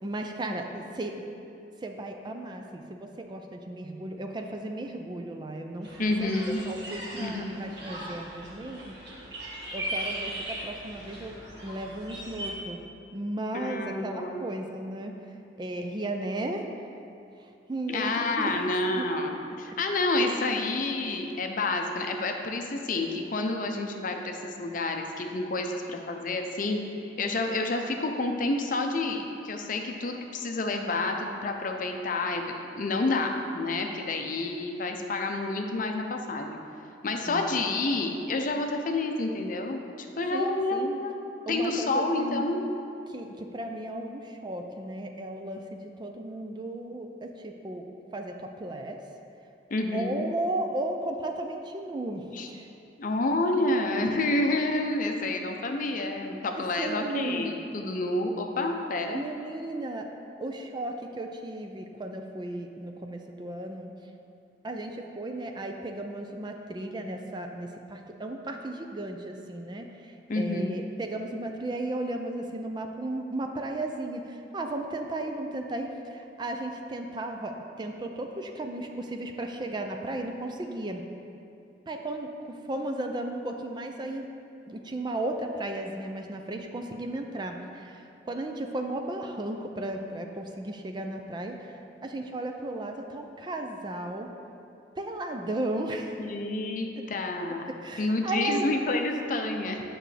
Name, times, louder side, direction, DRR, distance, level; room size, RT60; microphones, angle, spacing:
voice 1, 0.0-1.2 1.8-6.3 6.7-8.8 9.7-11.3 11.6-12.8 13.1-15.1 15.6-16.7 17.7-18.6 19.0-19.1 37.3-37.6 40.3-41.0 41.5-42.4 43.1-47.9 48.1-49.0 49.9-52.7 56.8-57.5 59.1-60.1 60.4-63.9 64.6-81.0 81.9-84.3 84.7-91.8 92.0-94.3 95.0-96.2 97.8-98.7, right 1 dB, 25° right, 4 dB, 0.4 m, -35 dB
sound 1, 5.8-12.5, right 1 dB, 65° right, 1.6 m, -38 dB
voice 2, 6.0-6.6 7.2-7.6 13.5-14.4 17.9-26.8 27.2-36.6 37.0-41.1 41.5-42.6 49.7-50.3 52.3-52.5 53.0-59.3 70.3-70.8 96.2-97.7 98.0-99.8, left 2 dB, 50° left, 4 dB, 0.6 m, -29 dB
9.0 x 6.0 x 3.3 m, 2.7 s
head